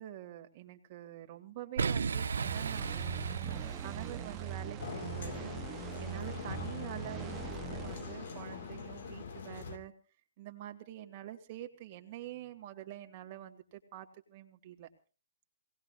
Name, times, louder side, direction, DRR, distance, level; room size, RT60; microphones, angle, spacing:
voice 1, 0.0-9.9 10.4-14.9, right 12 dB, 30° right, 5 dB, 2.3 m, -46 dB
Boom, 1.8-4.7, right 5 dB, 85° right, 1.1 m, -35 dB
sound 1, 2.4-8.9, right 7 dB, 15° right, 0.9 m, -42 dB
sound 2, 4.8-9.8, left 6 dB, 55° left, 2.1 m, -43 dB
24.5 x 18.5 x 2.5 m, 0.36 s
hypercardioid pair, 165°, 0 cm